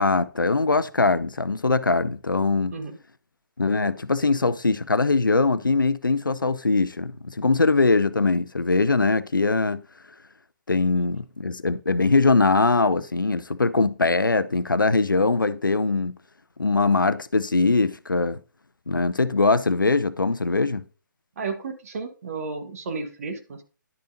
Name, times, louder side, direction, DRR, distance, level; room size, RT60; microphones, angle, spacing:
voice 1, 0.0-2.8 3.6-9.8 10.7-16.1 16.6-18.4 18.9-20.8, left 3 dB, 80° left, 0.6 m, -22 dB
voice 2, 21.4-23.6, right 4 dB, 45° right, 1.4 m, -33 dB
11.0 x 6.7 x 2.7 m
figure-of-eight pair, 135°, 11 cm